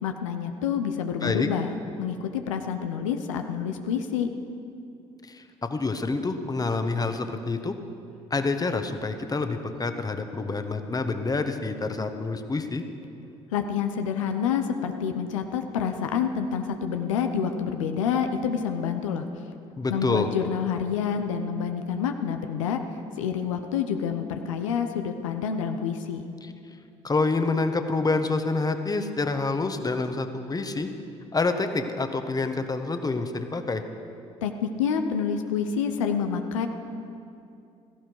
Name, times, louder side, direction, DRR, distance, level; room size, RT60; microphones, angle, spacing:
voice 1, 0.0-1.7 2.0-4.3 13.5-19.3 19.9-26.2 34.4-36.7, left 7 dB, 85° left, 6 dB, 0.7 m, -28 dB
voice 2, 5.2-7.7 8.3-12.8 19.8-20.3 26.4-26.5 27.0-30.9 31.3-33.8, left 3 dB, 25° left, 7 dB, 1.3 m, -27 dB
16.5 x 14.5 x 4.7 m, 2.6 s
hypercardioid pair, 55°, 16 cm